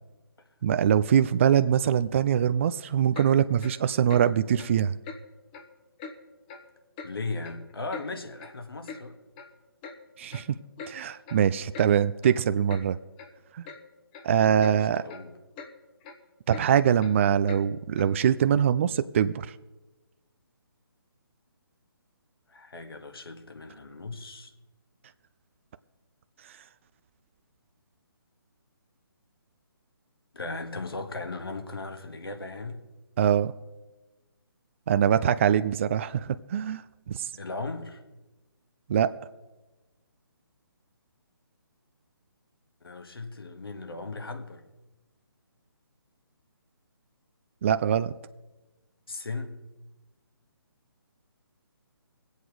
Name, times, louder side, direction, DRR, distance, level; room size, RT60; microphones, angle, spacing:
voice 1, 0.6-4.9 10.2-10.5 10.9-13.0 13.5-13.7 14.2-15.1 16.5-19.5 33.2-33.5 34.9-37.3 38.9-39.1 47.6-48.1, right 9 dB, 30° right, 0.4 m, -23 dB
Clock, 3.1-3.3 3.6-3.8 4.1-4.3 4.6-4.7 5.0-5.2 5.5-5.7 6.0-6.1 6.5-6.6 7.0-7.1 7.4-8.1 8.4-8.5 8.9-9.0 9.4-9.5 9.8-10.0 10.3-10.5 10.8-10.9 11.3-11.4 11.7-11.9 12.2-12.3 12.7-12.8 13.2-13.3 13.7-13.8 14.1-14.3 14.6-14.8 15.1-15.2 15.6-15.7 16.0-16.2 16.5-16.7 17.0-17.1 17.5-17.6 18.0-18.1, left 4 dB, 20° left, 1.0 m, -42 dB
voice 2, 7.0-9.2 11.1-11.2 14.6-15.4 22.5-24.5 30.3-32.8 37.4-38.0 42.8-44.6 49.1-49.6, left 3 dB, 75° left, 1.8 m, -37 dB
21.5 x 8.1 x 4.8 m
figure-of-eight pair, 145°, 13 cm